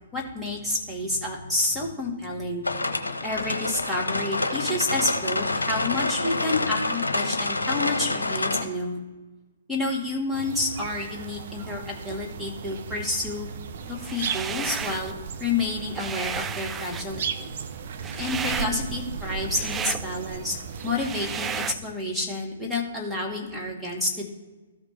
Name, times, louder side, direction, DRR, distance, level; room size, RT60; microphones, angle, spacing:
voice 1, 0.1-2.6 3.2-9.0 9.7-13.5 13.9-15.1 15.4-17.5 18.2-20.5 20.8-24.3, left 2 dB, ahead, -4 dB, 1.8 m, -29 dB
sound 1, 2.6-8.6, left 2 dB, 75° left, 0.9 m, -27 dB
sound 2, 10.3-21.8, right 6 dB, 50° right, 0.7 m, -36 dB
sound 3, 14.0-15.1 15.5-21.7, right 7 dB, 15° right, 0.3 m, -34 dB
14.0 x 5.0 x 3.3 m, 1.2 s
figure-of-eight pair, 120°, 0 cm